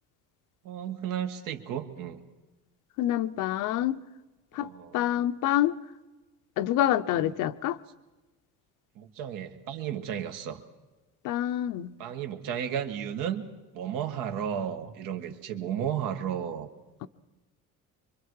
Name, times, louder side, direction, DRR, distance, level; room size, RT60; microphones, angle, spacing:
voice 1, 0.6-2.2 4.5-5.2 7.1-7.4 9.0-10.6 12.0-13.5 13.7-16.7, right 9 dB, 80° right, 1.8 m, -33 dB
voice 2, 3.0-4.0 4.5-5.7 6.6-7.8 11.2-11.9 17.0-17.1, left 12 dB, 70° left, 0.8 m, -27 dB
25.0 x 23.5 x 4.8 m
cardioid pair, 145°, 33 cm